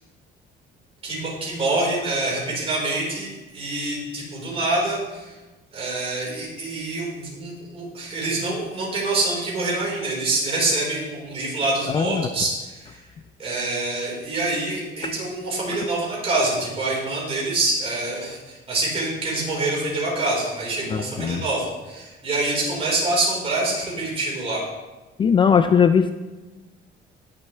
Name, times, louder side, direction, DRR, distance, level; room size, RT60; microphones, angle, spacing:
voice 1, 1.0-5.3 5.7-13.0 13.4-24.6, right 2 dB, 35° right, -4 dB, 4.5 m, -26 dB
voice 2, 11.9-12.3 20.9-21.4 25.2-26.1, left 7 dB, 25° left, 9 dB, 0.3 m, -19 dB
19.5 x 7.5 x 3.4 m, 1.2 s
cardioid pair, 155°, 18 cm